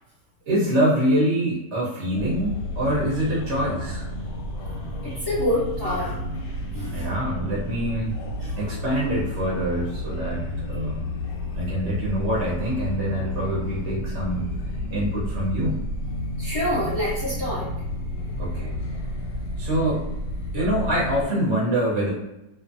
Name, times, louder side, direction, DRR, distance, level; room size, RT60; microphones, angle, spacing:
voice 1, 0.5-4.1 6.9-8.2 8.6-11.0 11.5-14.5 14.9-15.9 18.4-18.7 19.6-20.1 20.5-22.1, right 1 dB, 60° right, -6 dB, 0.7 m, -25 dB
sound 1, 2.1-21.3, left 1 dB, 90° left, 1.3 m, -31 dB
voice 2, 5.0-6.2 6.7-7.1 8.4-8.5 16.4-17.7, left 1 dB, 45° left, -10 dB, 0.8 m, -27 dB
2.6 x 2.4 x 2.5 m, 0.93 s
omnidirectional pair, 1.9 m